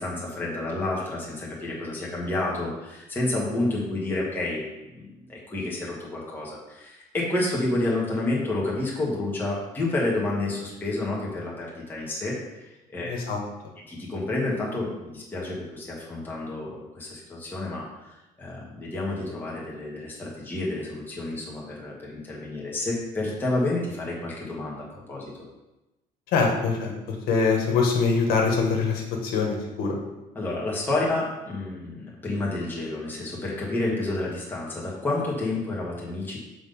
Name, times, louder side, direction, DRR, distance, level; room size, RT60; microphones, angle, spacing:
voice 1, 0.0-4.6 4.9-13.1 13.9-25.3 30.3-36.4, left 2 dB, 15° left, -5 dB, 1.6 m, -30 dB
voice 2, 13.0-13.4 26.3-26.9 27.3-29.9, left 4 dB, 75° left, 0 dB, 1.5 m, -23 dB
6.9 x 3.9 x 5.4 m, 1.0 s
cardioid pair, 170°, 15 cm